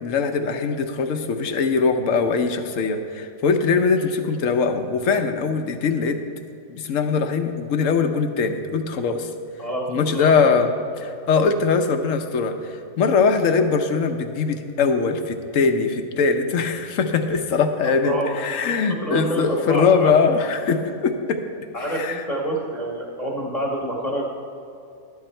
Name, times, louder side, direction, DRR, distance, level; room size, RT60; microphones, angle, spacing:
voice 1, 0.0-6.2 6.7-9.3 9.9-10.7 11.0-21.4 21.9-22.2, left 5 dB, 60° left, 6 dB, 1.1 m, -21 dB
voice 2, 9.6-10.4 17.8-18.7 19.0-20.1 21.7-24.4, right 1 dB, 25° left, -3 dB, 1.2 m, -27 dB
12.5 x 10.5 x 4.4 m, 2.6 s
omnidirectional pair, 1.6 m